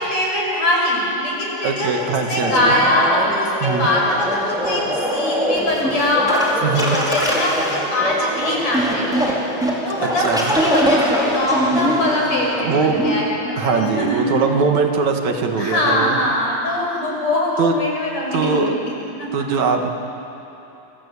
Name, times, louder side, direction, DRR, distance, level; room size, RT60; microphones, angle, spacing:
voice 1, 0.0-4.8 5.1-9.4 9.8-10.3 10.6-14.4 15.6-18.8 19.2-19.5, left 1 dB, 60° left, -2 dB, 7.6 m, -22 dB
voice 2, 1.6-2.7 3.6-3.9 6.6-7.0 10.2-10.6 12.6-13.0 13.6-16.2 17.6-17.7 18.3-18.7 19.3-19.9, right 5 dB, 70° right, 3 dB, 3.1 m, -21 dB
sound 1, 2.4-13.2, equal, ahead, 4.1 m, -22 dB
28.5 x 24.5 x 8.5 m, 3.0 s
omnidirectional pair, 3.4 m